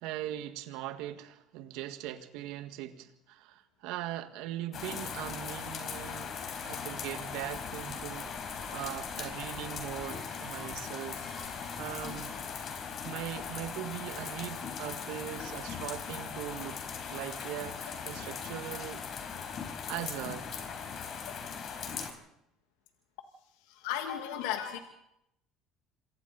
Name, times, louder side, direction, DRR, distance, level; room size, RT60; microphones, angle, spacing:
voice 1, 0.0-6.3 6.6-12.3 12.8-16.8 17.1-19.0 19.3-19.4 19.8-20.5, right 13 dB, 75° right, 8 dB, 1.8 m, -40 dB
sound 1, 4.7-22.1, left 6 dB, 50° left, 4.2 m, -39 dB
sound 2, 7.4-12.4, right 3 dB, 20° right, 3.2 m, -53 dB
voice 2, 23.6-24.8, left 10 dB, 80° left, 6 dB, 1.7 m, -35 dB
27.5 x 23.0 x 4.1 m, 0.82 s
supercardioid pair, 80°, 0 cm